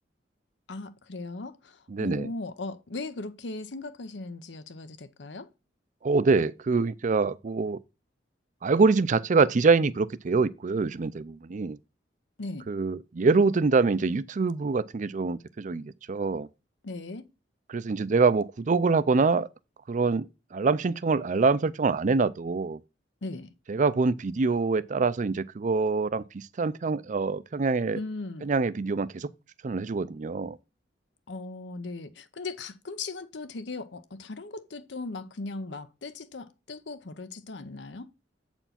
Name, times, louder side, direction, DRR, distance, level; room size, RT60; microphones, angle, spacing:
voice 1, 0.7-5.5 12.4-12.7 16.8-17.3 23.2-23.5 27.9-28.5 31.3-38.1, left 3 dB, 80° left, 0.8 m, -38 dB
voice 2, 1.9-2.3 6.0-7.8 8.6-11.8 12.7-16.5 17.7-19.5 19.9-22.8 23.7-28.0 28.4-29.3 29.6-30.6, right 4 dB, 45° right, 0.4 m, -25 dB
8.0 x 4.4 x 5.8 m
head